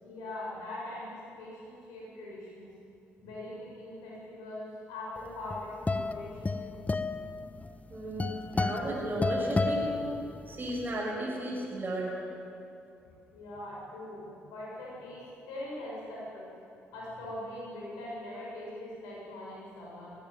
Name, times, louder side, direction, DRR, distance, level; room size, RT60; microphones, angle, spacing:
voice 1, 0.0-2.7 3.2-6.7 9.9-10.0 13.3-16.5 16.9-20.1, left 1 dB, 80° left, -5 dB, 6.9 m, -42 dB
sound 1, 5.3-10.7, left 3 dB, 25° left, 1.2 m, -32 dB
voice 2, 7.9-10.1 10.5-12.2, right 1 dB, 30° right, -6 dB, 6.4 m, -34 dB
19.5 x 16.0 x 9.3 m, 2.7 s
hypercardioid pair, 45°, 6 cm